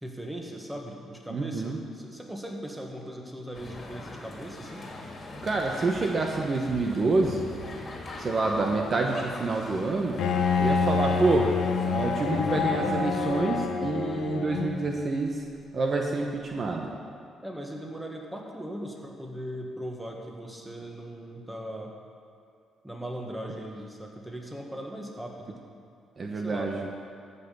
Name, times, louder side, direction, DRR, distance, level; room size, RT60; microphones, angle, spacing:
voice 1, 0.0-4.9 17.4-21.9 22.8-25.6 26.4-26.7, equal, 10° right, 0 dB, 1.7 m, -39 dB
voice 2, 1.3-1.8 5.4-7.5 8.2-10.2 10.6-11.5 11.8-15.4 15.7-16.9 26.2-27.0, right 3 dB, 40° right, 1 dB, 1.0 m, -27 dB
sound 1, 3.5-13.4, left 2 dB, 40° left, 2.1 m, -41 dB
Bowed string instrument, 10.2-15.0, left 5 dB, 80° left, 1.0 m, -27 dB
14.0 x 5.6 x 6.9 m, 2.4 s
cardioid pair, 90°, 0 cm